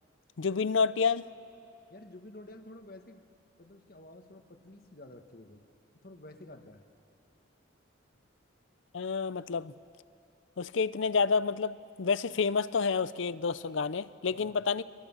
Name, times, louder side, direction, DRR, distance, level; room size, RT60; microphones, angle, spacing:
voice 1, 0.4-1.3 8.9-9.7 10.6-14.8, left 5 dB, 70° left, 0.5 m, -29 dB
voice 2, 1.9-3.2 3.6-5.6 6.0-6.8 14.3-14.6, left 1 dB, 45° left, 1.4 m, -50 dB
26.5 x 22.5 x 7.2 m
head